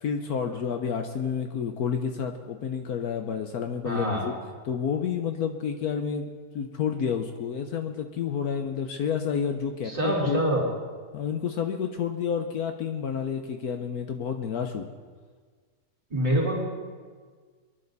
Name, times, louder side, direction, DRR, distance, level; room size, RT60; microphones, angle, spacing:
voice 1, 0.0-4.3 4.7-10.4 11.1-14.9, left 7 dB, 70° left, 6 dB, 1.3 m, -30 dB
voice 2, 3.8-4.3 9.8-10.6 16.1-16.6, right 1 dB, 20° right, -4 dB, 4.5 m, -25 dB
23.5 x 11.0 x 4.1 m, 1.5 s
omnidirectional pair, 1.7 m